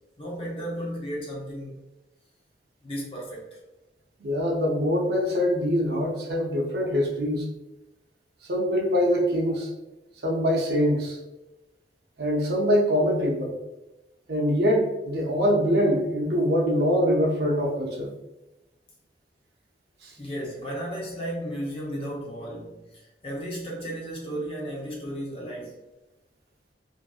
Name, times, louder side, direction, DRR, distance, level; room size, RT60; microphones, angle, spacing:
voice 1, 0.2-1.8 2.8-3.6 20.2-25.8, equal, 30° left, -4 dB, 0.7 m, -34 dB
voice 2, 4.2-7.5 8.5-9.7 10.2-11.2 12.2-13.5 14.3-18.1 20.0-20.1, equal, 60° right, -1 dB, 0.6 m, -24 dB
2.6 x 2.5 x 2.3 m, 1.0 s
head